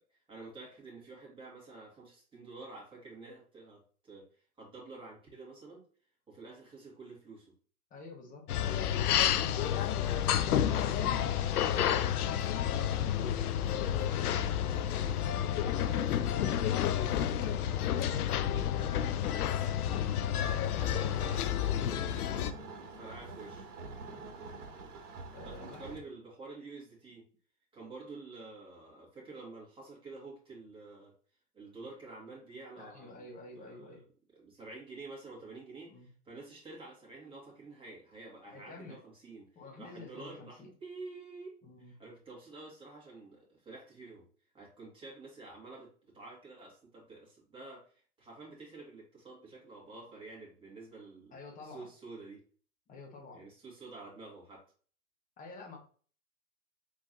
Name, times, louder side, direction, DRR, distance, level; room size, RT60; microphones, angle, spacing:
voice 1, 0.1-4.3 4.6-5.8 6.3-7.5 10.6-10.9 22.7-23.7 25.4-27.2 27.7-31.1 31.5-33.3 33.5-34.0 34.3-44.3 44.5-47.9 48.2-51.3 51.6-52.4 53.3-54.6, right 3 dB, 10° right, -4 dB, 2.0 m, -49 dB
voice 2, 7.9-13.6 13.9-16.5 16.9-19.1 19.4-21.4 21.8-22.4 24.0-24.2 25.3-25.9 32.8-34.0 35.9-36.1 38.5-39.0 39.5-40.7 41.6-41.9 51.3-51.9 52.9-53.4 55.4-55.8, left 3 dB, 20° left, 1 dB, 1.2 m, -49 dB
sound 1, 8.5-22.5, left 10 dB, 80° left, 0.6 m, -30 dB
sound 2, 20.8-26.0, right 3 dB, 55° right, 2.0 m, -46 dB
4.6 x 3.9 x 2.8 m, 0.43 s
hypercardioid pair, 125°, 44 cm